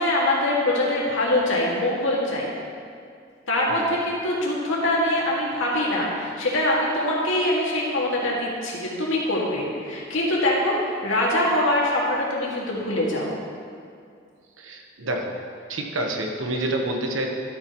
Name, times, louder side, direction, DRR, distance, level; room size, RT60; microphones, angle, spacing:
voice 1, 0.0-2.5 3.5-13.3, left 1 dB, 85° left, -4 dB, 2.1 m, -23 dB
voice 2, 14.6-15.4 15.7-17.3, right 1 dB, 85° right, 2 dB, 1.1 m, -28 dB
12.5 x 8.2 x 3.1 m, 2.3 s
head